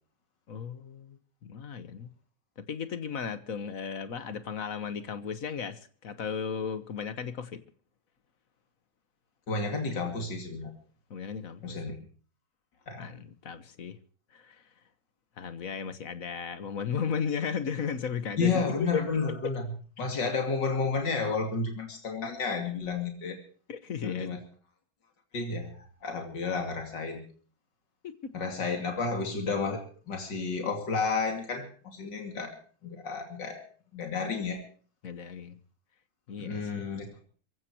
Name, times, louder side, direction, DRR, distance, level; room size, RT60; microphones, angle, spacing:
voice 1, 0.5-2.1 2.6-7.6 11.1-12.1 13.0-14.0 14.3-14.7 15.4-19.0 23.7-24.4 28.0-28.3 35.0-35.6 36.3-36.9, left 6 dB, 55° left, 12 dB, 1.6 m, -35 dB
voice 2, 9.5-10.7 11.6-12.0 12.9-13.1 18.4-19.6 20.0-23.4 24.0-24.4 25.3-27.3 28.3-29.8 30.1-32.6 32.8-33.6 33.9-34.6 36.4-37.1, left 4 dB, 85° left, 4 dB, 3.2 m, -31 dB
25.0 x 16.0 x 3.0 m, 0.43 s
omnidirectional pair, 1.9 m